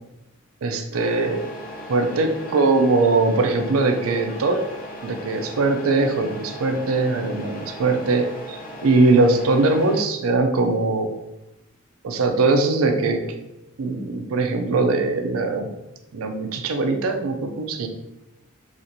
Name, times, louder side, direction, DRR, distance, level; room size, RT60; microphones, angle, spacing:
voice 1, 0.6-1.4 1.9-4.6 5.0-8.6 8.8-11.1 12.0-13.2 13.8-15.7 16.1-17.9, right 3 dB, 85° right, 6 dB, 0.5 m, -21 dB
Truck, 0.9-10.0, equal, 45° left, 0.6 m, -38 dB
4.2 x 2.5 x 2.6 m, 0.92 s
head